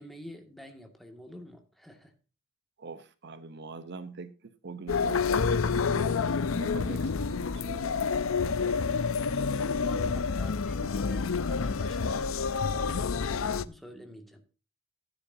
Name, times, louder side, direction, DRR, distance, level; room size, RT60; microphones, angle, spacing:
voice 1, 0.0-2.1 9.2-14.4, left 1 dB, ahead, 4 dB, 2.0 m, -48 dB
voice 2, 2.8-6.2 6.5-8.3, right 4 dB, 60° right, 12 dB, 0.8 m, -43 dB
sound 1, 4.9-13.6, left 5 dB, 90° left, 0.6 m, -28 dB
15.0 x 9.8 x 2.7 m, 0.35 s
head